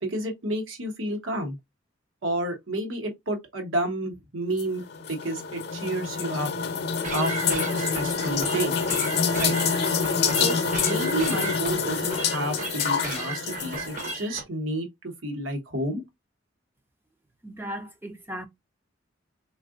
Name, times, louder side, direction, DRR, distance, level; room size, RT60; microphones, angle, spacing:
voice 1, 0.0-1.6 2.2-6.5 7.1-8.7 9.4-9.6 10.3-16.0, right 1 dB, 90° right, 1.1 m, -30 dB
sound 1, 4.6-14.2, left 6 dB, 55° left, 0.6 m, -27 dB
sound 2, 7.0-14.4, right 4 dB, 40° right, 0.7 m, -35 dB
voice 2, 17.4-18.5, equal, 10° right, 0.4 m, -36 dB
3.6 x 2.5 x 2.4 m
head